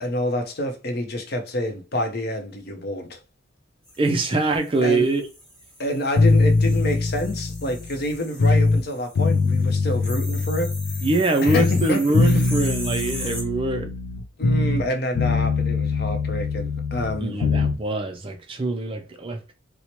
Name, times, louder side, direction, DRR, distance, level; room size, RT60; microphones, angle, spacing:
voice 1, 0.0-3.2 4.8-5.1 5.8-10.7 11.4-12.5 14.4-17.4, left 1 dB, 50° left, 0.6 m, -28 dB
sound 1, 3.9-13.4, equal, 5° left, 1.1 m, -40 dB
voice 2, 4.0-5.2 11.0-13.9 17.2-19.4, right 2 dB, 25° right, 0.4 m, -23 dB
sound 2, 6.2-8.8 9.2-11.2 11.5-14.9 15.2-17.8, left 3 dB, 85° left, 0.4 m, -22 dB
4.3 x 2.1 x 2.9 m
head